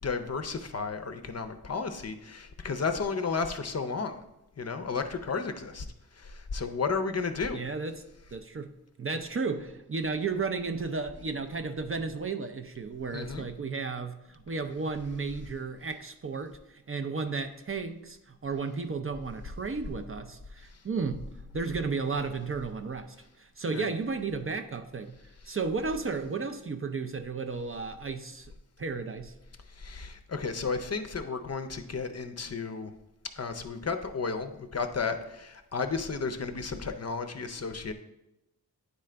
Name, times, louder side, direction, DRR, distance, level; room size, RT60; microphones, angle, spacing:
voice 1, 0.0-4.2 4.6-5.9 6.1-7.6 13.1-13.5 20.7-20.8 23.7-23.9 25.5-25.6 29.7-32.9 33.3-37.9, left 4 dB, 40° left, 8 dB, 0.5 m, -33 dB
voice 2, 7.5-8.0 8.3-8.7 9.0-21.2 21.5-25.2 25.5-28.5 28.8-29.3, right 4 dB, 35° right, 7 dB, 0.4 m, -33 dB
9.4 x 3.7 x 3.3 m, 0.91 s
wide cardioid pair, 60°, 39 cm